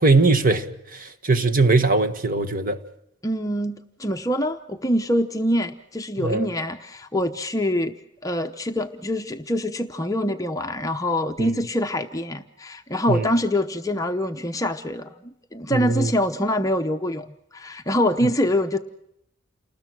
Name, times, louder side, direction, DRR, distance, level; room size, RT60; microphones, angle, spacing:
voice 1, 0.0-2.8 6.2-6.5 11.4-11.5 13.1-13.3 15.7-16.1, right 3 dB, 45° right, 1.5 m, -20 dB
voice 2, 3.2-18.8, left 1 dB, 15° left, 0.8 m, -25 dB
29.0 x 20.0 x 6.2 m
head